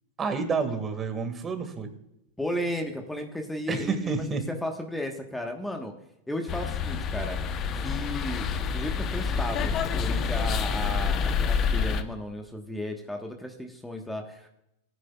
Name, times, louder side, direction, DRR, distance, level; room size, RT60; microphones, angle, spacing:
voice 1, 0.2-1.9 3.7-4.4, right 5 dB, 25° right, 7 dB, 1.8 m, -29 dB
voice 2, 2.4-5.9 6.3-7.4 7.7-14.6, left 1 dB, 5° left, 3 dB, 1.2 m, -34 dB
sound 1, 6.5-12.0, left 6 dB, 35° left, 0.8 m, -28 dB
16.0 x 9.4 x 2.3 m, 0.81 s
hypercardioid pair, 110°, 0 cm